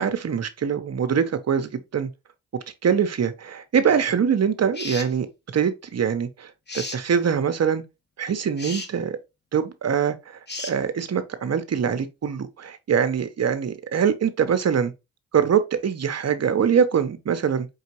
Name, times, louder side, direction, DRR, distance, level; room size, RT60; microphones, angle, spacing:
voice 1, 0.0-2.1 2.8-5.3 5.5-7.8 8.2-9.2 9.5-14.9 15.3-17.7, right 7 dB, 50° right, 0.9 m, -23 dB
sound 1, 4.7-5.1 6.7-7.0 8.6-8.9 10.5-10.8, left 3 dB, 30° left, 1.2 m, -33 dB
5.4 x 2.8 x 2.9 m
supercardioid pair, 55°, 32 cm